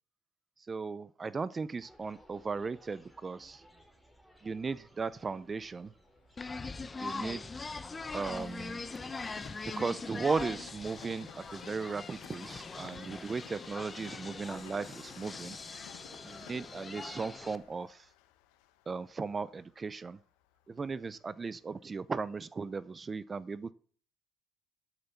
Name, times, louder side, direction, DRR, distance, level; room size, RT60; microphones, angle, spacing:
voice 1, 0.6-3.7 4.4-5.9 7.0-7.5 8.1-8.8 9.6-15.6 16.2-18.1 18.9-20.2 20.7-23.7, right 4 dB, 30° right, 19 dB, 0.5 m, -37 dB
sound 1, 1.8-17.8, equal, ahead, 3.4 m, -61 dB
Train, 5.6-21.5 22.1-22.2, left 12 dB, 85° left, 0.9 m, -55 dB
sound 2, 6.4-17.6, left 3 dB, 25° left, 1.0 m, -42 dB
12.0 x 6.8 x 5.8 m, 0.43 s
supercardioid pair, 70°, 0 cm